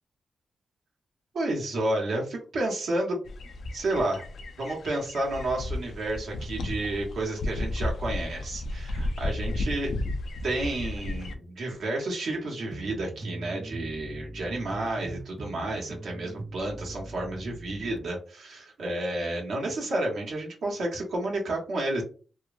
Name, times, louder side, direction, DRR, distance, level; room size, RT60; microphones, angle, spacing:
voice 1, 1.3-3.2 3.7-4.2 4.6-9.9 10.4-22.0, right 1 dB, 85° right, -1 dB, 1.0 m, -31 dB
sound 1, 3.2-11.3, left 2 dB, 80° left, 0.4 m, -33 dB
sound 2, 12.7-18.0, right 2 dB, 25° right, 0.4 m, -41 dB
3.0 x 2.0 x 2.5 m, 0.38 s
cardioid pair, 55°, 0 cm